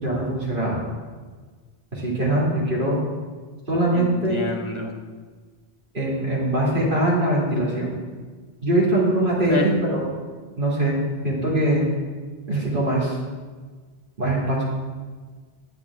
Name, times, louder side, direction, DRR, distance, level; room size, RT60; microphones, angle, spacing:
voice 1, 0.0-0.8 1.9-3.0 3.7-4.4 5.9-7.9 8.6-10.1 10.6-11.8 12.5-13.2 14.2-14.6, right 1 dB, 55° right, -5 dB, 2.5 m, -22 dB
voice 2, 3.9-4.9 9.5-9.7, left 1 dB, 30° left, 3 dB, 1.0 m, -28 dB
10.5 x 8.3 x 3.5 m, 1.5 s
omnidirectional pair, 1.1 m